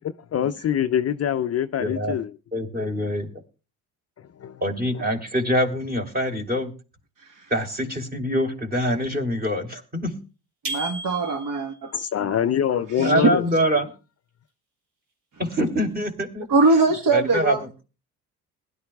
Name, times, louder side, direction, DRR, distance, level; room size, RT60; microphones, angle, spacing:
voice 1, 0.0-2.3 4.4-4.6 11.9-13.4, left 9 dB, 40° left, 0.5 m, -24 dB
voice 2, 1.8-2.2 2.5-3.3 4.6-6.7 7.5-10.2 13.0-13.9 15.4-16.5 17.1-17.6, equal, 20° right, 3.0 m, -24 dB
voice 3, 10.7-11.9 12.2-12.5 12.7-13.3 16.5-17.8, right 3 dB, 50° right, 1.5 m, -22 dB
sound 1, 10.7-11.7, right 2 dB, 75° right, 3.7 m, -33 dB
20.5 x 11.5 x 2.3 m
hypercardioid pair, 60°, 41 cm